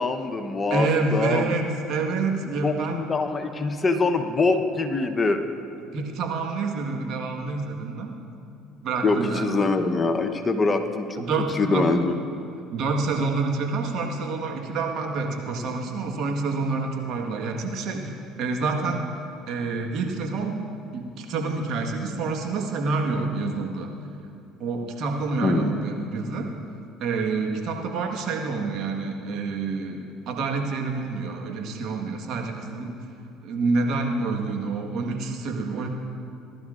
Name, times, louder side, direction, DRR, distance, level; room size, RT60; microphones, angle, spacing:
voice 1, 0.0-1.5 2.6-5.4 9.0-11.2 11.5-12.2 25.4-25.7, left 3 dB, 30° left, 7 dB, 0.9 m, -24 dB
voice 2, 0.7-3.0 5.8-8.2 8.8-9.7 11.1-11.9 12.7-19.1 19.5-20.6 20.9-23.9 24.6-26.5 27.0-33.0 33.4-35.9, right 3 dB, 60° right, 2 dB, 1.4 m, -28 dB
19.5 x 11.5 x 2.5 m, 2.6 s
hypercardioid pair, 70°, 0 cm